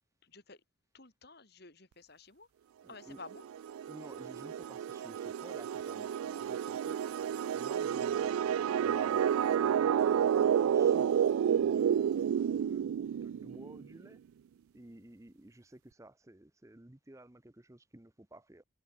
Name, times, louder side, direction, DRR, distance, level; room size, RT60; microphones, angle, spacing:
voice 1, 0.2-0.6 0.9-2.5 2.9-3.5, left 3 dB, 50° left, 3.1 m, -52 dB
voice 2, 2.8-3.2 3.9-7.0 7.5-9.4 9.6-10.0 10.4-11.1 11.5-14.2 14.7-18.6, right 1 dB, 15° right, 0.7 m, -53 dB
sound 1, 3.3-13.8, right 8 dB, 85° right, 0.3 m, -30 dB
head